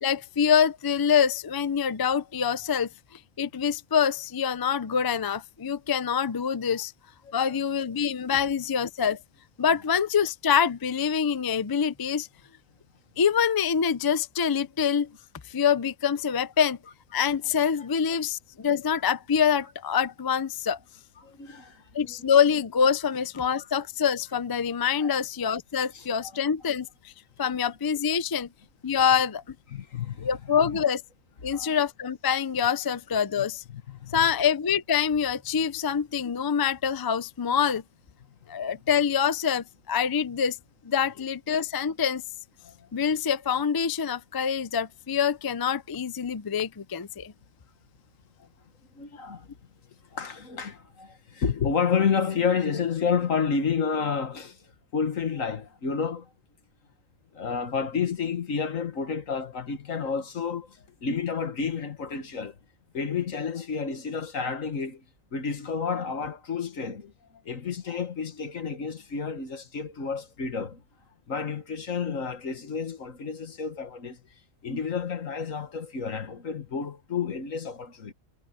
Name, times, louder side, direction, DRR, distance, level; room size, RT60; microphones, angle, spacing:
voice 1, 0.0-2.9 3.4-6.9 7.3-9.2 9.6-12.3 13.2-15.1 15.5-16.8 17.1-20.8 21.9-27.1 27.4-28.5 28.8-29.4 30.2-31.0 31.4-33.6 34.1-37.8 38.5-40.6 40.8-42.2 42.9-47.3, left 7 dB, 35° left, 0.3 m, -25 dB
voice 2, 7.2-7.6 17.8-17.9 21.2-22.1 23.6-23.7 25.0-25.2 25.9-26.4 29.7-30.9 31.4-31.8 33.4-33.5 33.7-34.3 42.6-42.9 48.4-48.5 48.9-49.5 50.1-56.3 57.3-62.6 62.9-65.0 65.3-67.1 67.5-70.8 71.3-74.2 74.6-78.1, left 6 dB, 85° left, 2.0 m, -30 dB
omnidirectional pair, 1.3 m